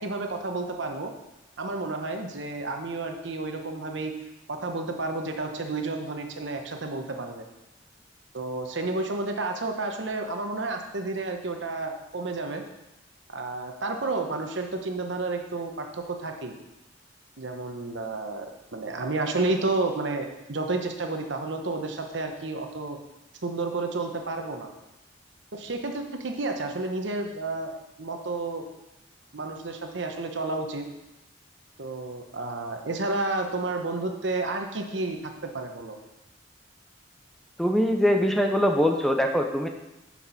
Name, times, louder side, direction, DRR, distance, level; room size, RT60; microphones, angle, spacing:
voice 1, 0.0-1.1 1.6-4.1 4.5-7.4 8.3-12.6 13.3-16.5 17.4-18.5 18.7-23.0 23.4-24.7 25.5-27.7 28.0-28.6 29.3-30.9 31.8-36.0, right 3 dB, 70° right, 4 dB, 1.0 m, -31 dB
voice 2, 37.6-39.7, equal, ahead, 4 dB, 0.5 m, -22 dB
6.9 x 5.9 x 5.8 m, 0.97 s
head